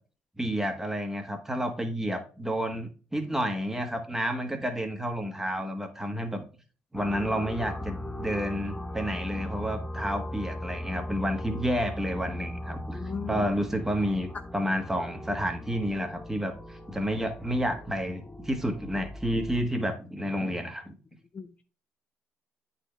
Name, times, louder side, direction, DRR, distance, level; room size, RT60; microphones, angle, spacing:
voice 1, 0.4-6.4 6.9-20.9, equal, 10° right, 1.5 m, -30 dB
sound 1, 6.9-19.6, left 1 dB, 15° left, 1.0 m, -39 dB
voice 2, 12.9-13.4 21.3-21.6, left 5 dB, 35° left, 0.5 m, -37 dB
8.9 x 4.2 x 3.3 m
cardioid pair, 85°, 4 cm